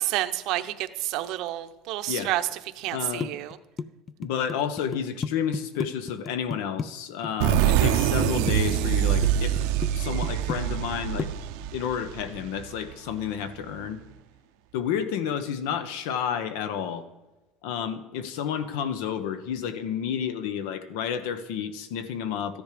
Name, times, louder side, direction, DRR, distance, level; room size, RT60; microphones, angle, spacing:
voice 1, 0.0-2.4 2.8-3.6, right 15 dB, 55° right, 10 dB, 0.8 m, -29 dB
voice 2, 2.9-3.4 4.2-9.6 9.9-11.3 11.7-14.0 14.7-17.1 17.6-22.6, left 8 dB, 90° left, 11 dB, 1.2 m, -30 dB
sound 1, 3.2-6.9 7.2-7.9 8.2-9.3 9.6-9.9 10.2-10.9 11.2-11.3, left 5 dB, 20° left, 0.3 m, -32 dB
sound 2, 7.4-12.9, right 11 dB, 80° right, 0.8 m, -25 dB
14.0 x 10.0 x 5.1 m, 1.1 s
cardioid pair, 175°, 0 cm